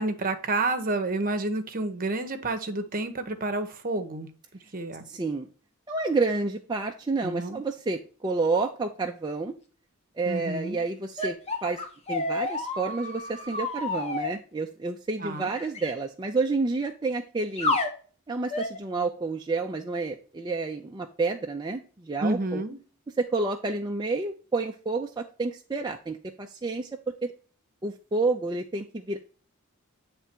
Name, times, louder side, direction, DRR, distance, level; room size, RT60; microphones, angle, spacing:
voice 1, 0.0-4.3 4.7-5.0 7.2-7.6 10.3-10.8 15.2-15.5 22.2-22.8, right 2 dB, 40° right, 8 dB, 1.0 m, -29 dB
voice 2, 5.1-5.5 5.9-9.6 10.2-11.8 12.1-17.8 18.3-22.6 23.2-26.9 27.2-27.3 27.8-29.2, right 3 dB, 20° right, 2 dB, 0.5 m, -29 dB
sound 1, 11.2-14.3 15.6-15.9 17.6-17.9 18.5-18.8, left 2 dB, 30° left, 1.2 m, -30 dB
8.7 x 3.4 x 4.4 m, 0.39 s
head